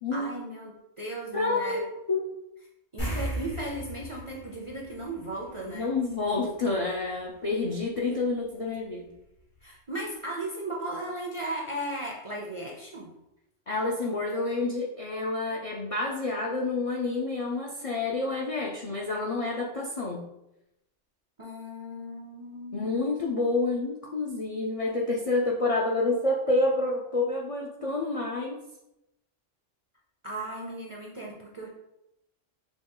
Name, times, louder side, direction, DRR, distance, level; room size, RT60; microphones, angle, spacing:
voice 1, 0.1-1.8 2.9-5.9 9.6-13.1 21.4-23.0 30.2-31.7, right 1 dB, 40° right, -2 dB, 0.4 m, -36 dB
voice 2, 1.3-2.3 5.7-9.1 13.7-20.3 22.7-28.6, left 2 dB, 60° left, -2 dB, 0.3 m, -28 dB
sound 1, 3.0-5.8 6.1-6.2 9.1-9.2 9.6-9.7, right 1 dB, 85° left, 2.0 m, -35 dB
5.1 x 2.3 x 3.7 m, 0.87 s
omnidirectional pair, 1.3 m